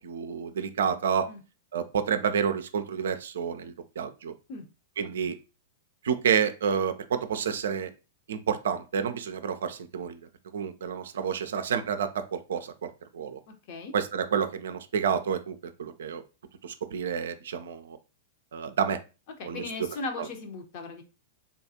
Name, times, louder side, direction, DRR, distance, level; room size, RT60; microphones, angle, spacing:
voice 1, 0.0-1.3 1.7-4.3 5.0-5.4 6.0-7.9 8.3-10.2 10.5-13.4 13.9-16.2 16.6-18.0 18.5-19.0 19.4-19.6 20.2-20.3, right 7 dB, 70° right, 9 dB, 0.4 m, -29 dB
voice 2, 13.5-13.9 19.4-21.0, left 3 dB, 50° left, 5 dB, 0.8 m, -37 dB
3.7 x 2.3 x 2.8 m, 0.31 s
figure-of-eight pair, 100°, 0 cm